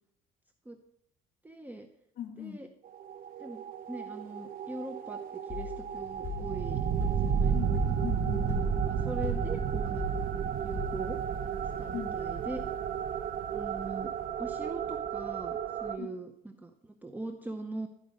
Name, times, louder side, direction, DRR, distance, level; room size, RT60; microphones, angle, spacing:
voice 1, 1.4-1.9 2.4-2.7 3.4-6.8 7.2-7.5 8.9-10.3 10.6-11.2 11.8-12.6 13.5-14.1 14.4-17.9, right 2 dB, 10° right, 5 dB, 0.7 m, -41 dB
voice 2, 2.2-2.6 7.5-8.7 11.9-12.2 16.0-16.1, left 9 dB, 65° left, 6 dB, 1.8 m, -40 dB
sound 1, 2.9-16.0, right 7 dB, 55° right, 0.8 m, -32 dB
sound 2, 5.5-11.3, left 7 dB, 15° left, 3.2 m, -41 dB
12.0 x 5.1 x 5.0 m, 0.76 s
cardioid pair, 110°, 17 cm